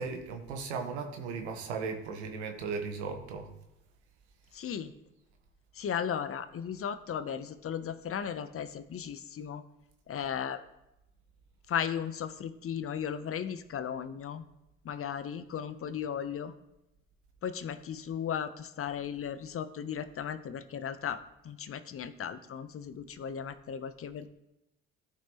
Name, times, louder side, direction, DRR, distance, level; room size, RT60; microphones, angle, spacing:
voice 1, 0.0-3.5, right 5 dB, 85° right, 5 dB, 1.1 m, -36 dB
voice 2, 4.5-4.9 5.7-9.6 10.1-10.6 11.7-14.4 14.8-16.5 17.4-21.2 21.4-24.3, left 8 dB, 45° left, 12 dB, 0.7 m, -36 dB
14.0 x 5.6 x 3.0 m, 0.92 s
hypercardioid pair, 55°, 32 cm